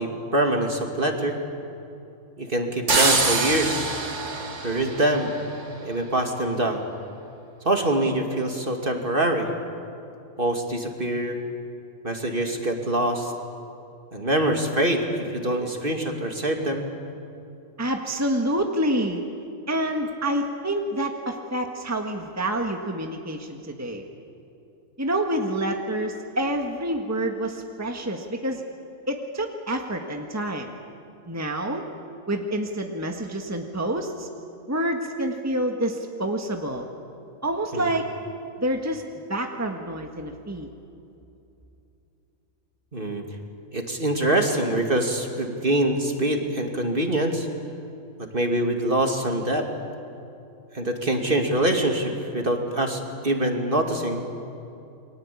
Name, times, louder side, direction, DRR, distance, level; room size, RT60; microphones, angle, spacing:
voice 1, 0.0-1.4 2.4-4.0 4.6-5.4 5.8-6.8 7.6-9.5 10.4-11.4 12.0-13.3 14.1-16.9 37.7-37.9 42.9-43.2 43.7-47.5 48.3-49.7 50.7-54.2, right 1 dB, 40° right, 3 dB, 2.7 m, -24 dB
sound 1, 2.9-5.7, right 3 dB, 60° right, 2.3 m, -25 dB
voice 2, 17.8-19.2 19.7-24.0 25.0-28.6 29.1-30.7 31.2-31.8 32.3-34.3 34.7-36.9 37.4-38.1 38.6-39.0 39.3-40.7, right 1 dB, 10° right, 3 dB, 1.6 m, -27 dB
29.5 x 23.5 x 8.6 m, 2.7 s
omnidirectional pair, 1.4 m